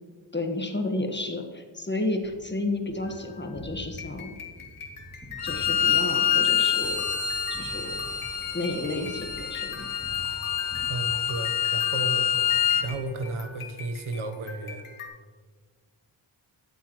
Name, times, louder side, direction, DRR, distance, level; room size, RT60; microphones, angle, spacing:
voice 1, 0.3-4.3 5.4-7.0 7.5-7.9 8.5-9.9, left 2 dB, 20° left, 4 dB, 1.5 m, -31 dB
Gunshot gunfire, 2.2-11.9 12.3-13.7, right 1 dB, 5° right, 2.8 m, -47 dB
sound 1, 3.0-15.1, left 5 dB, 80° left, 1.3 m, -44 dB
Bowed string instrument, 5.4-12.9, left 9 dB, 50° left, 1.0 m, -26 dB
voice 2, 10.9-12.3 12.8-14.8, right 3 dB, 75° right, 7 dB, 1.2 m, -33 dB
12.0 x 8.1 x 3.1 m, 1.5 s
cardioid pair, 55°, 49 cm